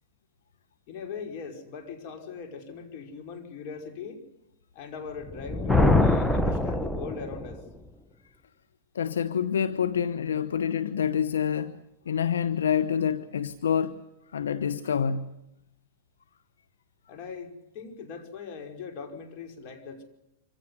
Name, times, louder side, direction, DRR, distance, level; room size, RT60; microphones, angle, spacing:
voice 1, 0.9-4.2 4.7-7.6 17.1-20.0, left 6 dB, 50° left, 5.2 m, -40 dB
Thunder, 5.2-7.6, left 2 dB, 5° left, 1.1 m, -24 dB
voice 2, 8.9-11.8 12.1-14.0 14.3-15.3, left 8 dB, 85° left, 1.0 m, -27 dB
25.0 x 16.5 x 9.6 m
hypercardioid pair, 115°, 0 cm